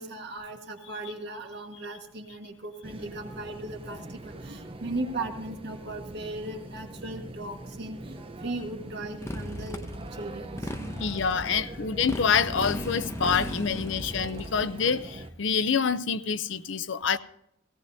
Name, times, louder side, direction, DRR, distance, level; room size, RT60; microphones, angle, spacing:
voice 1, 0.0-10.7, right 2 dB, 55° right, 4 dB, 1.5 m, -37 dB
sound 1, 2.8-15.3, right 1 dB, 25° right, 0.7 m, -43 dB
Motorcycle, 9.2-14.6, left 1 dB, 15° left, 0.8 m, -36 dB
voice 2, 11.0-17.2, left 6 dB, 65° left, 12 dB, 0.6 m, -27 dB
17.5 x 17.0 x 2.7 m, 0.77 s
head